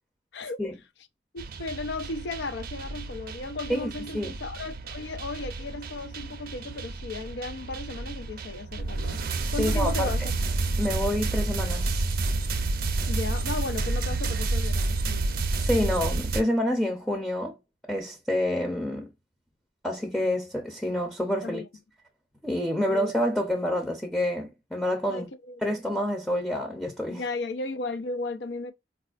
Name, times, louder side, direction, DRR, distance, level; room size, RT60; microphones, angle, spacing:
voice 1, 1.3-9.2 9.5-10.2 13.1-15.4 21.4-21.7 22.8-23.0 25.1-25.8 27.1-28.7, left 3 dB, 85° left, 0.5 m, -35 dB
sound 1, 1.4-16.4, right 3 dB, 55° right, 0.5 m, -30 dB
voice 2, 3.7-4.3 9.6-10.1 10.8-12.1 15.6-17.6 17.9-19.1 19.8-21.6 22.4-25.3 25.6-27.2, left 1 dB, 5° left, 0.5 m, -28 dB
4.0 x 2.4 x 2.4 m
head